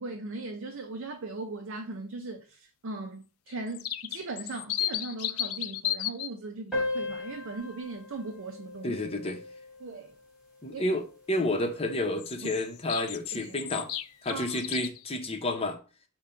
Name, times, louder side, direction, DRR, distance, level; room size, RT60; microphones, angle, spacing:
voice 1, 0.0-9.0 9.8-10.2 10.7-11.0 11.4-11.5 12.4-12.5 13.3-13.6 14.3-14.6, right 3 dB, 60° right, 0.5 m, -39 dB
sound 1, 3.5-6.3 12.2-15.0, left 12 dB, 85° left, 0.4 m, -34 dB
sound 2, 6.7-11.7, left 2 dB, 5° right, 1.6 m, -38 dB
voice 2, 8.8-9.4 10.6-11.0 11.3-13.9 14.2-15.8, left 1 dB, 30° left, 0.7 m, -30 dB
5.3 x 2.2 x 4.3 m
head